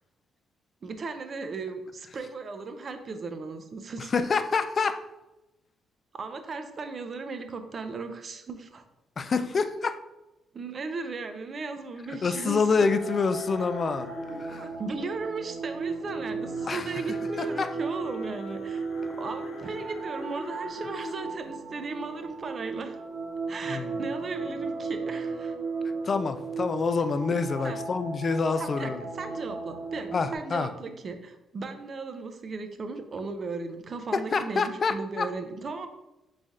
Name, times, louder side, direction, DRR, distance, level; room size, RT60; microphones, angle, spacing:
voice 1, 0.8-4.1 6.1-8.8 10.5-12.9 14.5-18.9 19.2-23.0 23.5-25.5 27.6-27.8 28.5-35.9, right 4 dB, 45° right, 7 dB, 0.6 m, -36 dB
voice 2, 4.0-5.0 9.2-10.0 12.2-14.1 14.4-14.7 16.7-16.9 17.4-17.7 23.7-24.0 26.0-29.0 30.1-30.7 34.1-35.3, left 4 dB, 40° left, 10 dB, 0.4 m, -27 dB
sound 1, 12.0-30.4, right 4 dB, 85° right, 0.7 m, -36 dB
sound 2, 12.7-21.3 21.9-22.2 22.5-22.6, left 3 dB, 65° left, 0.8 m, -43 dB
4.0 x 3.2 x 3.6 m, 0.96 s
cardioid pair, 90°, 0 cm